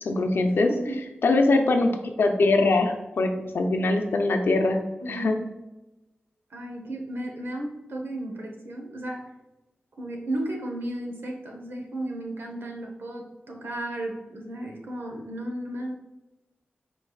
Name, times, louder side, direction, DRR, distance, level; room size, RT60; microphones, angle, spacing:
voice 1, 0.0-0.7 1.2-5.4, left 2 dB, 80° left, 5 dB, 0.6 m, -22 dB
voice 2, 5.0-5.4 6.5-9.3 10.0-15.9, right 1 dB, 80° right, 1 dB, 0.9 m, -34 dB
4.6 x 4.5 x 2.3 m, 1.0 s
cardioid pair, 60°, 4 cm